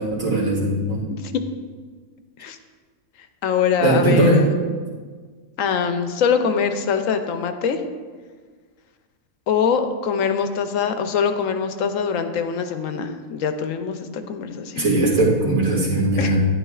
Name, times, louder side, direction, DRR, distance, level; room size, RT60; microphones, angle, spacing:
voice 1, 0.0-1.0 3.8-4.4 14.8-16.4, right 2 dB, 75° right, -6 dB, 2.6 m, -19 dB
voice 2, 3.4-4.5 5.6-7.8 9.5-14.9 16.2-16.4, left 6 dB, 80° left, 7 dB, 1.0 m, -23 dB
11.0 x 9.9 x 2.4 m, 1.5 s
omnidirectional pair, 1.4 m